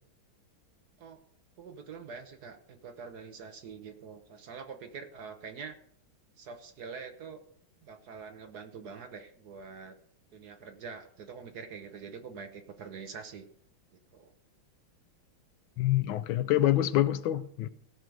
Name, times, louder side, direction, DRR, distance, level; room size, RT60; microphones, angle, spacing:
voice 1, 1.6-5.8 6.4-7.4 7.8-10.0 10.3-13.5 13.9-14.3, right 5 dB, 55° right, 7 dB, 1.3 m, -45 dB
voice 2, 15.8-17.7, left 13 dB, 80° left, 14 dB, 1.4 m, -26 dB
16.5 x 6.2 x 5.2 m, 0.64 s
omnidirectional pair, 2.2 m